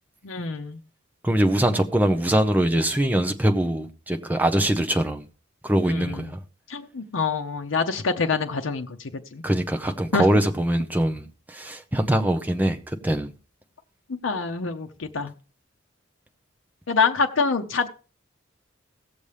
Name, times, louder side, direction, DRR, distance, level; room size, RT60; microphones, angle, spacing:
voice 1, 0.2-0.8 5.9-6.3 6.7-9.4 10.1-10.3 14.2-15.3 16.9-17.9, left 4 dB, 75° left, 0.7 m, -26 dB
voice 2, 1.2-5.2 5.6-6.4 9.4-13.3, right 1 dB, 10° right, 0.8 m, -23 dB
17.5 x 7.0 x 3.3 m
head